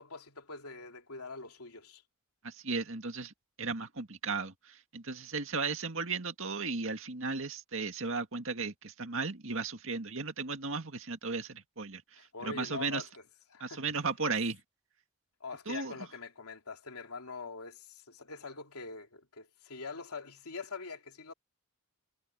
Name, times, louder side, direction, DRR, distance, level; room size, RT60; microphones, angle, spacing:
voice 1, 0.0-2.0 12.1-13.2 13.5-13.9 14.3-14.4 15.4-21.3, left 4 dB, 85° left, 3.2 m, -44 dB
voice 2, 2.4-3.3 3.6-13.0 13.6-14.6 15.7-15.9, right 4 dB, 60° right, 2.2 m, -35 dB
head